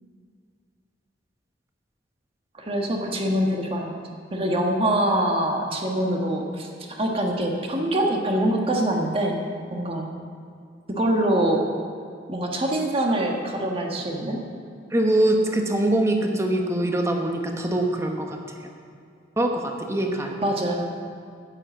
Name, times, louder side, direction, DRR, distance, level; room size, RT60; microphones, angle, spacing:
voice 1, 2.6-3.9 4.3-6.7 7.0-9.4 9.7-10.1 10.9-11.7 12.3-14.4 20.4-20.9, right 1 dB, 30° right, 1 dB, 1.5 m, -24 dB
voice 2, 14.9-18.4 19.4-20.4, right 1 dB, 15° right, 2 dB, 1.2 m, -23 dB
9.9 x 9.7 x 7.2 m, 2.2 s
head